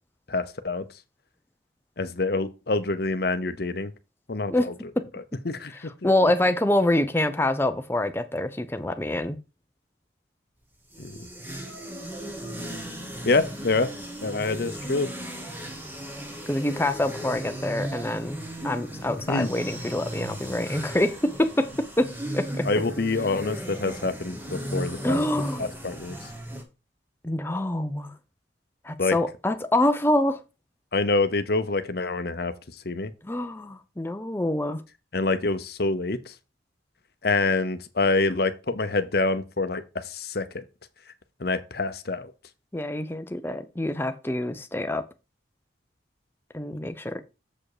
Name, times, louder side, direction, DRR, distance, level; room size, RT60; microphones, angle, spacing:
voice 1, 0.3-0.9 2.0-3.9 4.3-4.7 5.1-6.3 11.0-11.3 13.2-13.9 14.2-15.1 19.3-19.5 22.7-25.2 25.6-26.3 29.0-29.2 30.9-33.1 35.1-36.3 37.2-40.6 41.4-42.3, left 3 dB, 55° left, 0.8 m, -26 dB
voice 2, 6.0-9.4 16.5-18.4 18.6-22.7 25.0-25.7 27.2-28.1 28.8-30.4 33.2-34.8 42.7-45.0 46.5-47.2, left 1 dB, 10° left, 0.7 m, -26 dB
sound 1, 10.7-26.6, right 1 dB, 10° right, 1.4 m, -36 dB
7.4 x 4.8 x 4.9 m
head